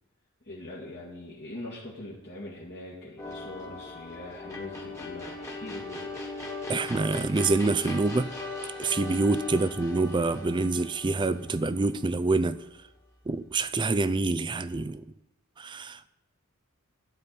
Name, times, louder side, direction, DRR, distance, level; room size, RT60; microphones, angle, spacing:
voice 1, 0.4-6.1 9.5-9.7, left 1 dB, 50° left, -6 dB, 1.7 m, -42 dB
sound 1, 3.2-12.4, left 3 dB, 15° left, 1.5 m, -39 dB
voice 2, 6.7-8.3 8.8-12.6 13.3-15.0 15.6-16.1, right 3 dB, 20° right, 14 dB, 0.4 m, -26 dB
12.0 x 4.4 x 8.3 m, 0.98 s
head